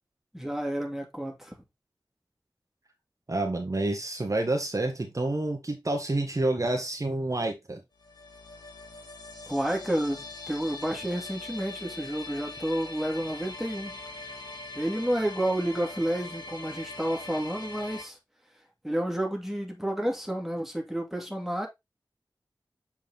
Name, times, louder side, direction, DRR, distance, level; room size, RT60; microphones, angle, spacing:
voice 1, 0.3-1.6 9.5-14.0 14.7-18.2 18.8-21.7, right 1 dB, 5° right, 2.6 m, -30 dB
voice 2, 3.3-7.8, right 2 dB, 45° right, 1.5 m, -28 dB
sound 1, 8.0-18.0, left 2 dB, 65° left, 2.3 m, -42 dB
7.3 x 4.7 x 3.7 m
wide cardioid pair, 65°, 8 cm